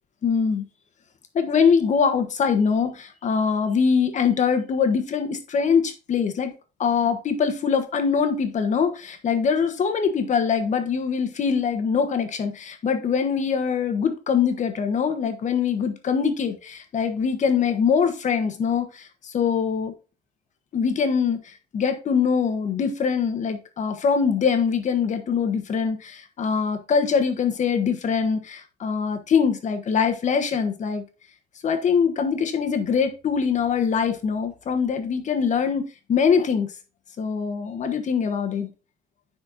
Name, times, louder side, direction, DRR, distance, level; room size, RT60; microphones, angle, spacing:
voice 1, 0.2-0.6 1.3-6.5 6.8-19.9 20.7-21.4 21.7-31.0 31.6-36.7 37.2-38.7, left 6 dB, 45° left, 1.3 m, -23 dB
9.9 x 4.3 x 2.8 m
cardioid pair, 110°, 17 cm